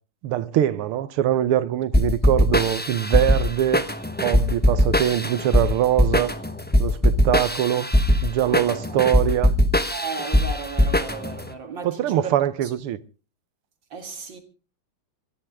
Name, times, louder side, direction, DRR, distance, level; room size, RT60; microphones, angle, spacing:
voice 1, 0.2-3.9 4.2-6.3 6.8-7.9 8.2-9.6 11.8-13.0, right 11 dB, 85° right, 1.8 m, -23 dB
sound 1, 1.9-11.5, left 1 dB, 15° left, 0.4 m, -21 dB
voice 2, 9.9-12.4 12.6-12.7 13.9-14.4, right 5 dB, 60° right, 2.6 m, -35 dB
26.0 x 11.5 x 3.5 m
omnidirectional pair, 2.3 m